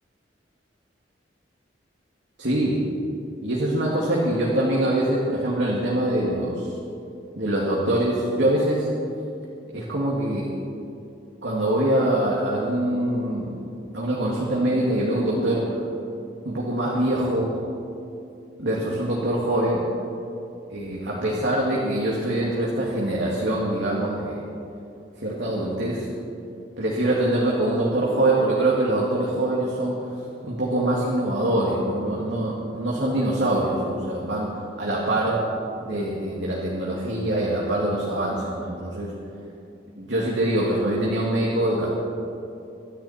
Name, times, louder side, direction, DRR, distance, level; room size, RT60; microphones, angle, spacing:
voice 1, 2.4-2.8 3.4-6.7 7.4-8.9 9.7-10.5 11.4-13.6 13.9-15.8 16.5-17.5 18.6-19.8 20.7-24.4 25.2-26.1 26.8-30.1 30.4-34.5 34.8-35.4 35.8-39.1 40.0-41.9, right 1 dB, 70° right, -4 dB, 2.3 m, -24 dB
24.5 x 10.5 x 4.4 m, 2.7 s
head